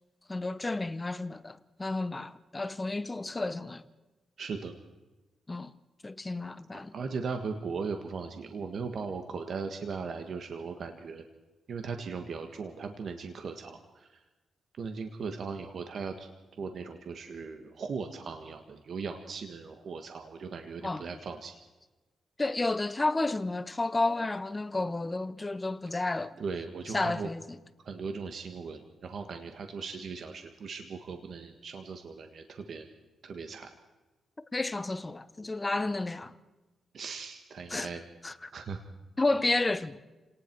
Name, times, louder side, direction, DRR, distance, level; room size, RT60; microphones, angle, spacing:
voice 1, 0.3-3.8 5.5-5.7 6.0-6.9 20.8-21.0 22.4-26.3 26.9-27.4 34.5-36.3 37.7-37.9 38.2-38.5 39.2-40.0, left 2 dB, 20° left, 1.0 m, -31 dB
voice 2, 4.4-4.7 6.7-11.2 11.7-14.2 14.8-16.3 16.6-21.6 26.4-27.3 27.8-32.9 33.2-33.7 36.9-38.0 38.5-38.8, right 5 dB, 60° right, 1.7 m, -38 dB
30.0 x 18.5 x 4.7 m
cardioid pair, 95°, 0 cm